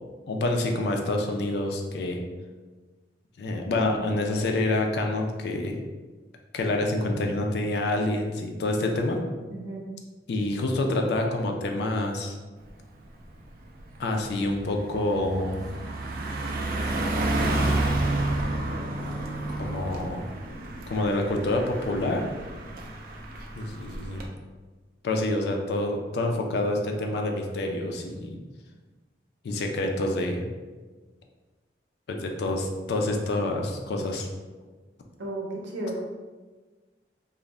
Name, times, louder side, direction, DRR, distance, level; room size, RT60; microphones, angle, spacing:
voice 1, 0.3-2.2 3.4-5.8 6.5-9.2 10.3-12.4 14.0-15.6 17.7-18.5 19.6-20.2 20.9-22.3 23.5-24.2 25.0-28.4 29.4-30.5 32.1-34.3, left 2 dB, 65° left, 3 dB, 0.3 m, -27 dB
voice 2, 9.5-9.8 35.2-36.0, right 1 dB, 90° right, -2 dB, 0.6 m, -33 dB
Car passing by, 12.7-12.9 13.3-24.3, right 2 dB, 50° right, 0.3 m, -30 dB
2.4 x 2.0 x 3.2 m, 1.3 s
head